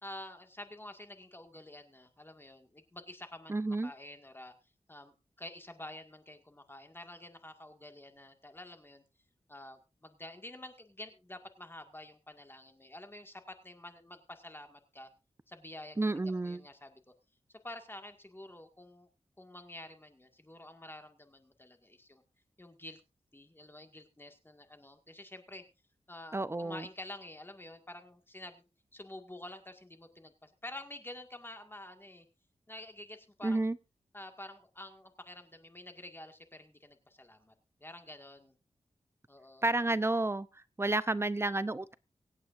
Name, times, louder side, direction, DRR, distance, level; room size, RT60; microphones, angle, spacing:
voice 1, 0.0-4.5 4.9-9.0 9.5-15.1 15.5-17.0 17.5-19.1 19.4-22.2 22.6-23.0 23.3-25.6 26.1-32.3 32.7-33.7 34.1-37.5 37.8-38.6 39.3-39.6, left 1 dB, 20° left, 6 dB, 1.9 m, -49 dB
voice 2, 3.5-3.9 16.0-16.6 26.3-26.8 33.4-33.8 39.6-40.5 40.8-41.9, right 2 dB, 25° right, 16 dB, 0.6 m, -30 dB
24.5 x 8.6 x 2.6 m, 0.27 s
wide cardioid pair, 75°, 11 cm